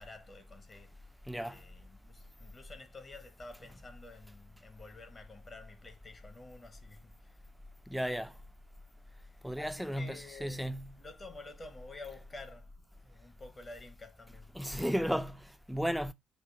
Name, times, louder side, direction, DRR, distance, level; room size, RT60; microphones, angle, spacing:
voice 1, 0.0-1.1 1.4-7.5 9.2-14.6, left 3 dB, 35° left, 0.9 m, -51 dB
voice 2, 1.3-1.6 7.9-8.3 9.4-11.0 14.5-16.1, equal, ahead, 0.3 m, -34 dB
5.1 x 2.2 x 3.1 m
figure-of-eight pair, 50°, 0 cm